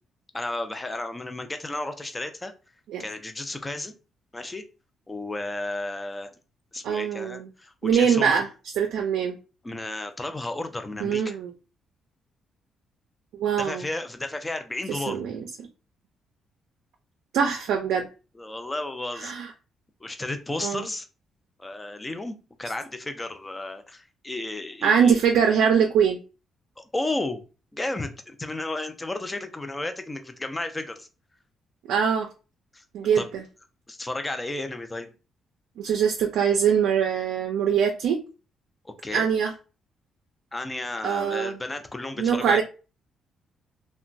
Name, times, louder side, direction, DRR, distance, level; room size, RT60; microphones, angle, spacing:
voice 1, 0.3-2.5 3.0-3.9 4.3-4.6 5.1-6.3 6.7-8.4 9.6-11.4 13.6-15.2 18.3-19.3 20.0-21.1 21.6-25.2 26.8-27.4 27.7-31.1 32.7-32.8 33.2-33.3 33.9-35.1 38.8-39.3 40.5-42.6, left 2 dB, 15° left, 0.5 m, -33 dB
voice 2, 6.8-7.5 7.8-8.5 8.8-9.4 11.0-11.5 13.3-13.8 14.9-15.4 17.3-18.1 19.2-19.5 20.6-20.8 24.8-26.2 31.9-32.3 32.9-33.4 35.8-38.2 39.1-39.5 41.0-41.5 42.2-42.6, right 7 dB, 85° right, 0.4 m, -23 dB
2.9 x 2.2 x 2.6 m
cardioid pair, 90°, 0 cm